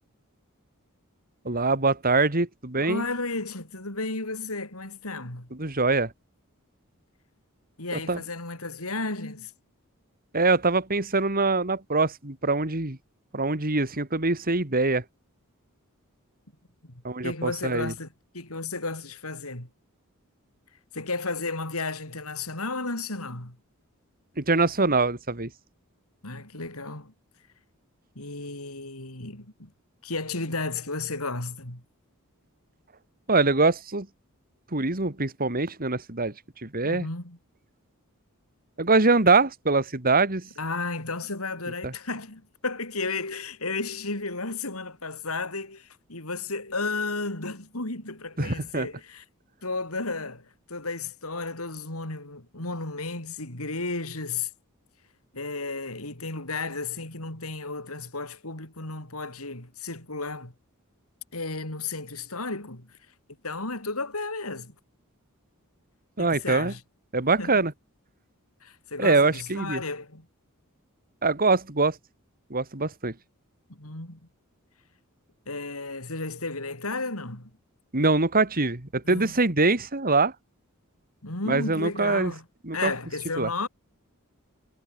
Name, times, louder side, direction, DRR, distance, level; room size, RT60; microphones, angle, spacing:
voice 1, 1.4-3.0 5.6-6.1 7.9-8.2 10.3-13.0 13.3-15.0 17.0-17.9 24.4-25.5 33.3-34.1 34.7-36.3 36.6-37.1 38.8-40.5 41.8-41.9 48.4-48.9 66.2-66.7 67.1-67.7 69.0-69.8 71.2-72.0 72.5-73.1 77.9-80.3 81.5-82.3 82.6-82.9 83.4-83.5, right 3 dB, 40° right, 3.0 m, -23 dB
voice 2, 2.8-5.5 7.8-9.5 16.8-19.7 20.9-23.6 26.2-27.1 28.2-29.7 30.0-31.8 36.8-37.4 40.6-49.2 49.6-54.5 55.3-60.5 61.3-63.0 63.4-64.7 66.2-66.8 67.4-67.6 68.6-70.3 73.7-74.2 75.5-77.5 79.0-79.4 81.2-82.4 82.7-83.7, left 3 dB, 75° left, 5.8 m, -33 dB
head